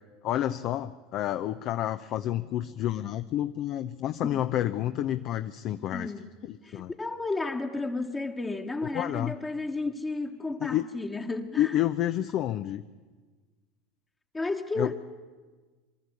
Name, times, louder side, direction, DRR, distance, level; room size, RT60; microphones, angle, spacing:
voice 1, 0.2-6.1 6.4-6.9 8.9-9.3 10.6-10.9 11.6-12.8 14.8-14.9, left 12 dB, 55° left, 0.7 m, -29 dB
voice 2, 5.9-6.3 6.6-11.8 14.3-14.9, left 3 dB, 15° left, 1.3 m, -32 dB
23.5 x 13.0 x 9.6 m
hypercardioid pair, 95°, 0 cm